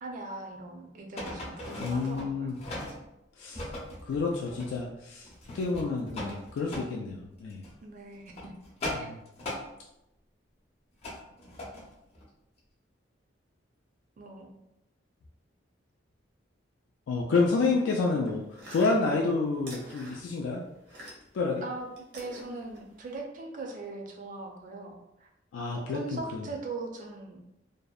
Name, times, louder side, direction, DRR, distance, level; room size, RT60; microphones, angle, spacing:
voice 1, 0.0-2.5 7.8-8.6 8.9-9.1 14.2-14.6 21.6-25.3 25.7-27.4, right 3 dB, 45° right, 2 dB, 0.4 m, -40 dB
sound 1, 1.2-3.0 3.5-4.9 5.2-6.9 7.5-7.7 8.1-9.7 11.0-11.9 12.1-12.2, left 1 dB, 35° left, 0.6 m, -39 dB
voice 2, 1.8-2.6 3.4-3.7 4.0-5.3 5.5-7.7 8.9-9.2 17.1-20.6 21.3-21.6 25.5-26.5, left 3 dB, 90° left, -1 dB, 0.3 m, -29 dB
sound 2, 18.2-21.4 21.7-23.2, right 1 dB, 80° right, 0.7 m, -48 dB
2.6 x 2.0 x 2.3 m, 0.86 s
head